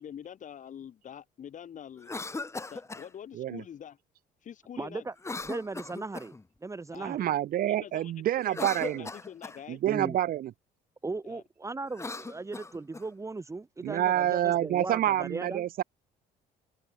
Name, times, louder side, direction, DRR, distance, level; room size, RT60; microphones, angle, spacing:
voice 1, 0.0-2.1 2.7-4.0 4.4-5.0 6.9-7.1 7.7-9.8 11.2-11.4, left 9 dB, 50° left, 3.3 m, -45 dB
Cough, 2.0-3.1 5.2-6.4 8.4-9.6 11.8-13.1, left 3 dB, 15° left, 2.0 m, -38 dB
voice 2, 4.8-5.2 5.5-6.3 6.6-7.3 9.9-10.2 11.0-15.7, right 3 dB, 15° right, 2.0 m, -37 dB
voice 3, 7.0-9.1 9.7-10.5 13.8-15.8, right 12 dB, 60° right, 0.9 m, -28 dB
open air
cardioid pair, 110°, 17 cm